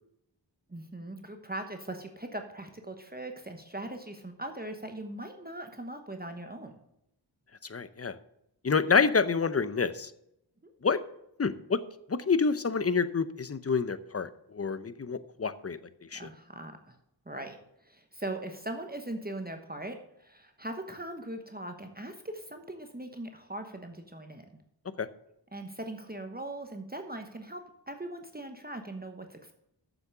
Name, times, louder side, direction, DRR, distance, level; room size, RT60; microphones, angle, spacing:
voice 1, 0.7-6.7 10.6-10.7 16.1-17.0 17.3-17.6 17.8-24.5 25.5-27.6 27.9-29.6, right 1 dB, 20° right, 5 dB, 1.1 m, -40 dB
voice 2, 7.7-8.1 8.6-10.1 10.8-11.0 11.4-11.8 12.1-15.8 16.1-16.3 25.0-25.1, left 5 dB, 35° left, 14 dB, 0.7 m, -28 dB
7.2 x 6.8 x 6.6 m, 0.80 s
cardioid pair, 45°, 44 cm